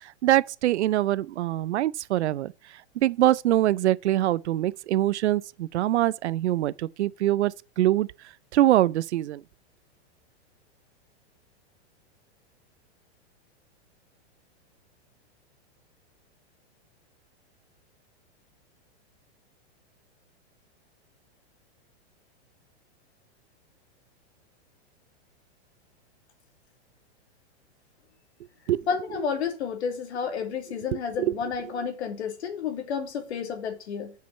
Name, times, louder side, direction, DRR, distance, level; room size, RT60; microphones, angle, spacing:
voice 1, 0.0-2.5 3.0-8.1 8.5-9.4 28.7-28.9 30.9-31.4, right 14 dB, 85° right, 0.6 m, -24 dB
voice 2, 28.9-34.1, left 6 dB, 75° left, 2.7 m, -31 dB
6.7 x 6.3 x 5.2 m
supercardioid pair, 155°, 33 cm